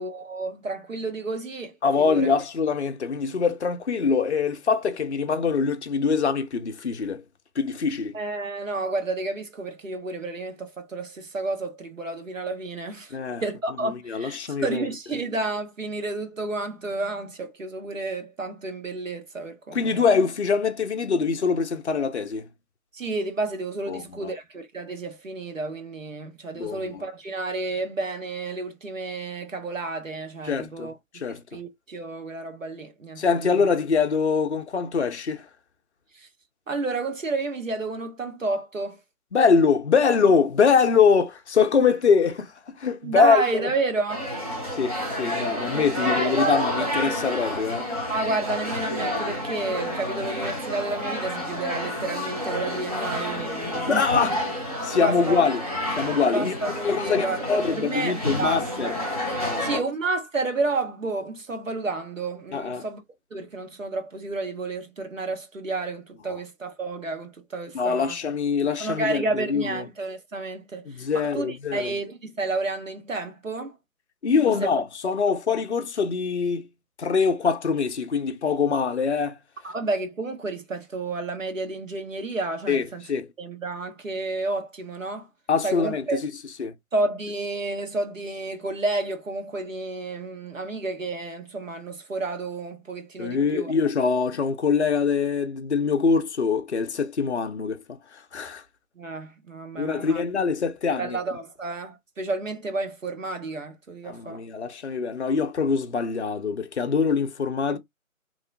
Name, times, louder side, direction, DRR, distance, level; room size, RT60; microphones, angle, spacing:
voice 1, 0.0-2.3 8.1-20.0 22.9-30.9 31.3-33.6 36.1-36.3 36.7-39.0 43.0-44.3 45.9-46.9 48.1-54.3 55.0-55.4 56.3-58.9 59.6-63.0 63.3-68.2 68.8-73.8 74.6-74.7 79.6-83.0 83.4-85.3 85.6-86.2 86.9-93.7 99.0-100.2 101.0-104.4 107.7-107.8, right 3 dB, 65° right, 1.0 m, -31 dB
voice 2, 1.8-7.2 7.6-8.2 13.1-13.4 13.8-14.8 19.7-22.5 23.9-24.3 26.5-27.0 30.5-31.6 33.2-35.5 39.3-43.6 44.7-47.9 53.9-54.4 54.8-55.6 55.9-56.5 56.8-59.0 59.4-59.8 62.5-62.9 67.7-69.9 70.9-71.9 74.2-76.7 77.0-79.4 82.7-83.3 85.5-86.2 86.6-86.7 93.2-97.8 98.1-98.6 99.8-101.2 104.0-107.8, left 5 dB, 55° left, 0.5 m, -24 dB
sound 1, 44.1-59.8, left 1 dB, 25° right, 0.7 m, -30 dB
2.9 x 2.0 x 2.6 m
figure-of-eight pair, 155°, 43 cm